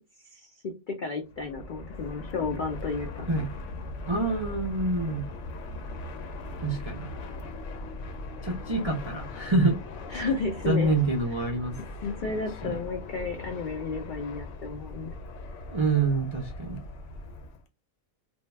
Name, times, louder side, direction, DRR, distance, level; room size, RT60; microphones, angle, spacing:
voice 1, 0.3-3.3 10.1-11.0 12.0-15.1, left 4 dB, 85° left, 0.4 m, -32 dB
Fixed-wing aircraft airplane, 1.2-17.6, left 2 dB, 65° left, 0.9 m, -39 dB
voice 2, 4.1-5.3 6.6-7.1 8.4-9.8 10.6-11.8 12.6-12.8 15.7-16.8, right 2 dB, 50° right, 0.3 m, -26 dB
2.7 x 2.2 x 3.1 m
omnidirectional pair, 1.5 m